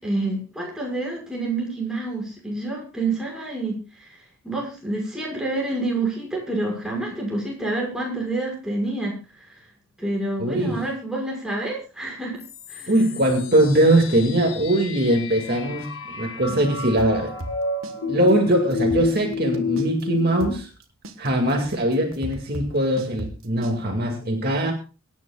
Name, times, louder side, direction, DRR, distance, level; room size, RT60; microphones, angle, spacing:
voice 1, 0.0-4.2 4.4-9.2 10.0-12.4 12.7-12.9, right 2 dB, 5° right, -3 dB, 5.7 m, -28 dB
voice 2, 10.4-10.8 12.9-15.9 16.2-17.4 18.1-20.7 21.2-24.7, right 1 dB, 45° right, 2 dB, 2.2 m, -21 dB
sound 1, 12.4-20.5, left 4 dB, 80° left, 1.9 m, -30 dB
sound 2, 17.0-18.0 18.3-18.4 18.7-20.0 20.4-23.8, right 1 dB, 75° right, 1.5 m, -35 dB
24.0 x 10.5 x 2.4 m, 0.33 s
head